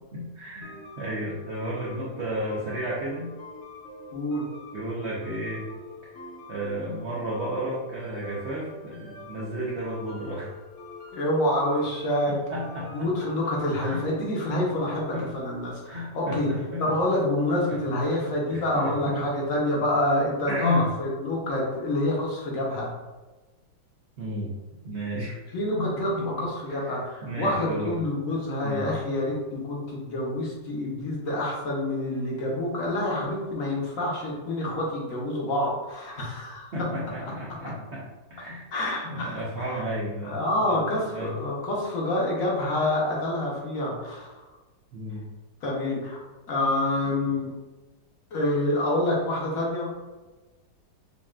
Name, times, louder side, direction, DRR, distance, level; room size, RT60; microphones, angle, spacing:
voice 1, 0.1-3.3 4.7-5.7 6.5-10.5 12.5-13.1 13.8-14.0 14.5-15.3 15.9-17.2 17.7-18.2 18.5-19.2 20.5-20.9 24.2-24.5 24.8-25.4 25.7-26.5 26.9-27.9 28.6-28.9 36.1-36.2 36.7-38.0 38.3-38.6 39.0-41.4 44.9-45.2, equal, 75° right, -5 dB, 0.6 m, -32 dB
sound 1, 0.6-15.4, left 2 dB, 85° left, 0.6 m, -45 dB
voice 2, 4.1-4.4 11.1-12.4 12.9-15.8 16.1-16.5 16.8-22.9 25.5-36.7 37.2-37.3 38.7-39.8 40.2-44.3 45.6-46.2 46.5-47.5 48.3-49.9, left 1 dB, 55° left, -3 dB, 1.1 m, -27 dB
5.3 x 2.3 x 2.4 m, 1.2 s
omnidirectional pair, 2.0 m